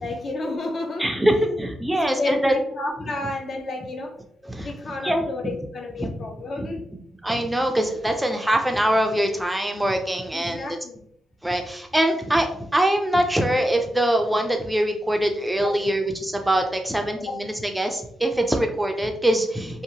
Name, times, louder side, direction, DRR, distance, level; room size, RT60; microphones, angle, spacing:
voice 1, 0.0-4.2 4.6-6.9 10.3-11.0 15.6-15.7 17.3-17.4, left 2 dB, 45° left, 3 dB, 0.5 m, -31 dB
voice 2, 1.0-2.5 4.4-4.7 5.0-5.5 6.0-6.1 6.6-6.7 7.2-10.8 11.4-19.8, right 1 dB, 10° right, 4 dB, 0.4 m, -23 dB
2.8 x 2.1 x 2.7 m, 0.70 s
cardioid pair, 90°, 0 cm